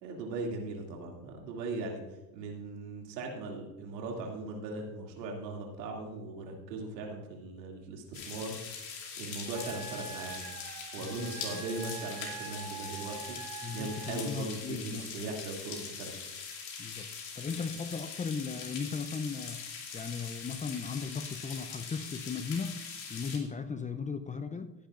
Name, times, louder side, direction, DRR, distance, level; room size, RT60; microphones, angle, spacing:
voice 1, 0.0-2.0 2.3-8.6 9.2-10.5 10.9-13.4 13.7-16.1, right 3 dB, 80° right, 0 dB, 2.7 m, -39 dB
sound 1, 8.1-23.4, left 6 dB, 85° left, 2.5 m, -42 dB
Wind instrument woodwind instrument, 9.5-14.4, right 8 dB, 40° right, 1.5 m, -45 dB
voice 2, 11.0-11.6 13.6-15.4 16.8-19.6 19.9-22.8 23.1-24.7, left 5 dB, 15° left, 10 dB, 0.6 m, -37 dB
16.0 x 9.7 x 2.5 m, 1.0 s
hypercardioid pair, 80°, 50 cm